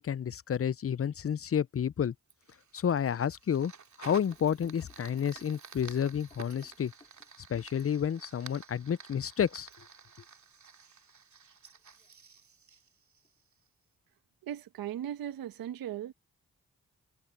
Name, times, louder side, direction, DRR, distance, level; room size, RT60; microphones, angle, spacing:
voice 1, 0.0-2.1 2.7-3.7 4.0-6.9 7.5-9.7, left 8 dB, 40° left, 0.6 m, -30 dB
Fire, 2.3-13.7, right 6 dB, 55° right, 2.8 m, -52 dB
sound 1, 4.3-8.3 11.7-12.1 13.2-13.3, left 2 dB, 20° left, 3.7 m, -60 dB
voice 2, 14.4-16.1, right 11 dB, 85° right, 1.2 m, -38 dB
supercardioid pair, 40°, 35 cm